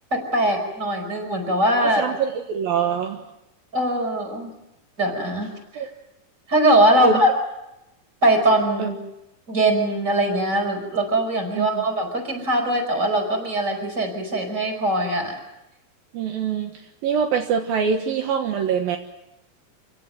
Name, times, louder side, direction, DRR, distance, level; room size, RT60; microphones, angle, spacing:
voice 1, 0.1-2.0 3.7-4.5 5.0-5.8 6.5-7.3 8.2-9.0 9.5-15.4, right 1 dB, 20° right, 4 dB, 5.6 m, -21 dB
voice 2, 1.8-3.2 5.8-5.9 7.0-7.2 8.8-8.9 11.5-11.8 16.1-19.0, right 6 dB, 70° right, 4 dB, 3.2 m, -24 dB
27.0 x 17.5 x 9.3 m, 0.92 s
omnidirectional pair, 4.4 m